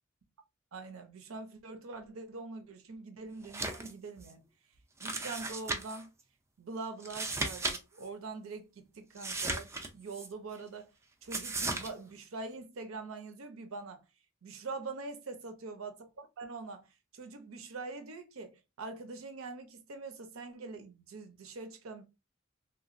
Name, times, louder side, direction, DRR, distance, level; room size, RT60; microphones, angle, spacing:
voice 1, 0.7-4.4 5.0-6.1 6.6-10.9 11.2-14.0 14.4-22.0, right 3 dB, 80° right, 0.6 m, -44 dB
sound 1, 3.4-3.9 4.2-4.3 5.0-6.0 7.0-8.1 9.2-10.3 11.3-11.9, right 2 dB, 15° right, 0.3 m, -36 dB
2.9 x 2.2 x 2.4 m
head